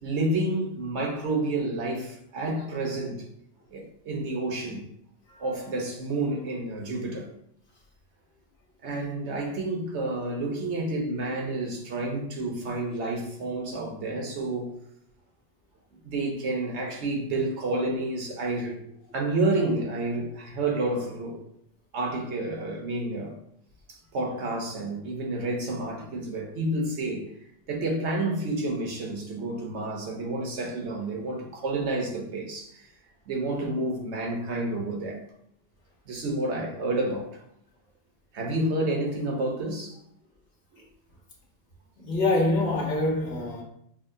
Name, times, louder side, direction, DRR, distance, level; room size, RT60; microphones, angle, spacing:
voice 1, 0.0-3.2 3.7-4.9 5.4-7.3 8.8-14.7 16.0-18.8 19.1-21.4 21.9-23.4 23.9-27.3 27.7-32.9 33.3-35.2 36.1-37.4 38.3-40.0, right 2 dB, 85° right, 1.1 m, -29 dB
voice 2, 42.0-43.6, left 2 dB, 70° left, 1.4 m, -25 dB
6.1 x 2.2 x 2.6 m
omnidirectional pair, 1.1 m